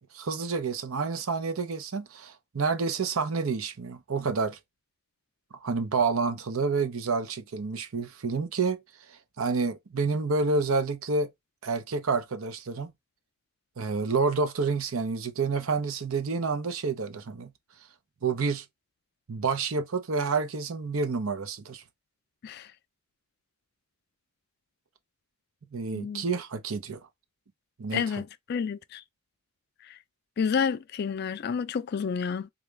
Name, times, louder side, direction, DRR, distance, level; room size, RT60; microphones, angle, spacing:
voice 1, 0.1-4.6 5.6-8.8 9.1-11.3 11.6-12.9 13.8-17.5 18.2-18.6 19.3-21.8 25.7-27.0 27.8-28.0, right 4 dB, 85° right, 0.7 m, -29 dB
voice 2, 27.9-29.0 29.9-30.0 30.4-32.5, left 6 dB, 50° left, 0.3 m, -30 dB
3.9 x 2.3 x 3.3 m
head